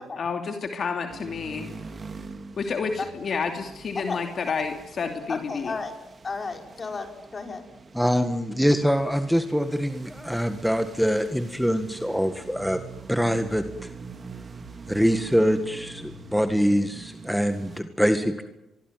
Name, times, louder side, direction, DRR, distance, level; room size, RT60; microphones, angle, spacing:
voice 1, 0.2-1.7 2.6-5.7, left 5 dB, 50° left, 5 dB, 2.7 m, -30 dB
sound 1, 1.1-17.8, right 4 dB, 35° right, 3.2 m, -44 dB
voice 2, 5.3-5.9 6.2-7.6, left 4 dB, 35° left, 5 dB, 5.3 m, -33 dB
voice 3, 7.9-12.8 13.1-13.9 14.9-18.4, equal, ahead, 8 dB, 1.7 m, -24 dB
24.0 x 22.0 x 9.2 m, 0.92 s
cardioid pair, 90°, 0 cm